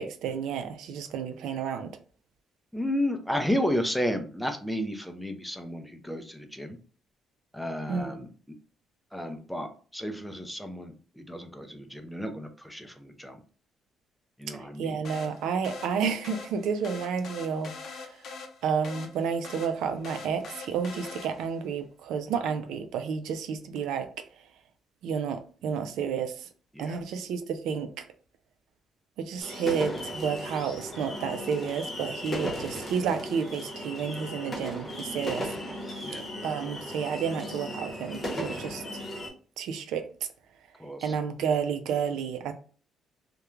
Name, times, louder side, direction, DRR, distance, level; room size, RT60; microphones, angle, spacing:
voice 1, 0.0-2.0 7.9-8.2 14.5-18.2 18.6-24.1 25.0-26.5 26.8-28.0 29.2-35.5 36.4-39.0 39.6-40.1 41.0-42.5, right 6 dB, 85° right, 0.4 m, -31 dB
voice 2, 2.7-6.8 7.5-8.3 9.1-13.4 14.4-15.0 26.7-27.0 36.0-36.2 40.8-41.1, equal, ahead, 0.4 m, -32 dB
sound 1, 15.0-21.6, left 4 dB, 60° left, 0.6 m, -43 dB
sound 2, 29.4-39.3, equal, 20° left, 0.8 m, -36 dB
2.3 x 2.1 x 3.0 m
cardioid pair, 120°, 0 cm